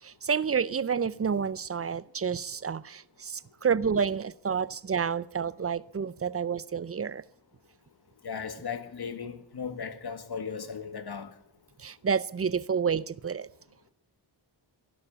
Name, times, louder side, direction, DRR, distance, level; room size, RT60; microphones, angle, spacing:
voice 1, 0.0-7.2 11.8-13.5, right 6 dB, 30° right, 0.5 m, -29 dB
voice 2, 8.2-11.3, left 6 dB, 55° left, 2.0 m, -36 dB
16.0 x 12.0 x 7.1 m
wide cardioid pair, 115°, 46 cm